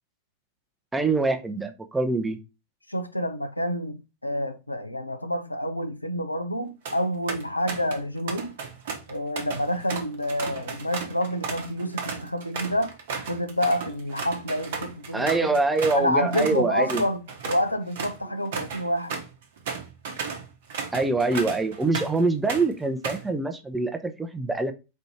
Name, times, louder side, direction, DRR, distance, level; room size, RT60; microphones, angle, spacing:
voice 1, 0.9-2.4 15.1-17.0 20.9-24.7, right 3 dB, 10° right, 0.6 m, -25 dB
voice 2, 2.9-8.6 9.1-13.0 13.3-15.6 15.9-19.2, equal, 85° left, 0.5 m, -28 dB
sound 1, 6.6-7.0 7.3-8.0 8.3-16.0 16.3-16.6 16.9-22.2 22.5-23.3, right 5 dB, 55° right, 0.9 m, -34 dB
4.3 x 2.7 x 4.3 m
figure-of-eight pair, 90°, 0 cm